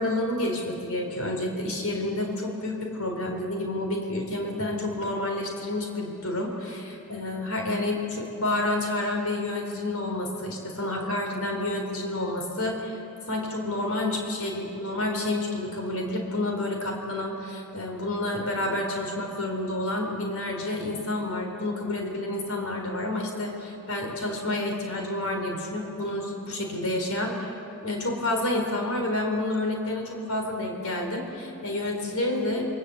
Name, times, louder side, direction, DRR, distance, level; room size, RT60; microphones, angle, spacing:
voice 1, 0.0-13.0 13.3-32.7, left 1 dB, 80° left, 2 dB, 4.3 m, -29 dB
29.0 x 23.0 x 8.2 m, 2.9 s
head